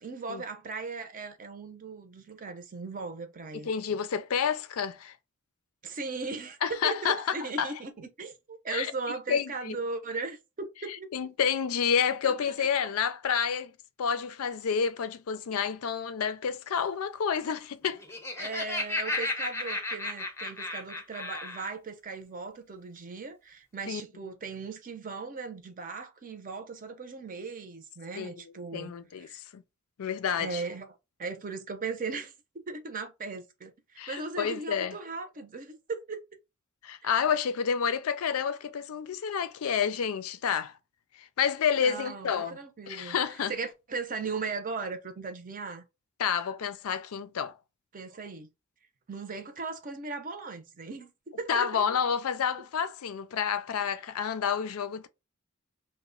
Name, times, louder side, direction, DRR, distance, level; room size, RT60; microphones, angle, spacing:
voice 1, 0.0-3.7 5.8-11.1 12.2-12.3 18.4-28.9 29.3-29.4 30.4-30.9 31.2-32.3 32.7-36.2 37.0-37.1 41.8-45.8 47.9-48.5 49.1-51.1 51.4-51.7 53.8-54.0, right 4 dB, 40° right, 0.6 m, -38 dB
voice 2, 3.6-5.1 6.6-7.7 8.7-8.9 9.3-9.8 10.9-13.7 14.0-18.0 23.9-24.0 28.2-29.6 30.0-30.6 34.0-35.0 36.8-40.7 41.2-42.6 42.9-43.5 46.2-47.5 51.5-55.1, left 7 dB, 70° left, 0.4 m, -29 dB
Laughter, 17.9-21.7, left 2 dB, 10° left, 0.6 m, -34 dB
2.9 x 2.1 x 3.7 m
head